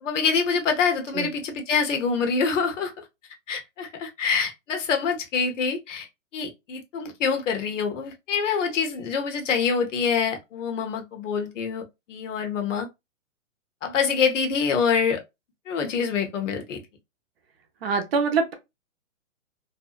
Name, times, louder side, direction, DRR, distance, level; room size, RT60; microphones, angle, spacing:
voice 1, 0.0-3.0 3.5-6.1 6.3-11.8 12.1-12.9 13.8-15.2 15.7-16.8, left 5 dB, 65° left, 1.0 m, -25 dB
voice 2, 17.8-18.5, right 5 dB, 50° right, 0.6 m, -24 dB
2.6 x 2.1 x 2.3 m
hypercardioid pair, 145°, 40 cm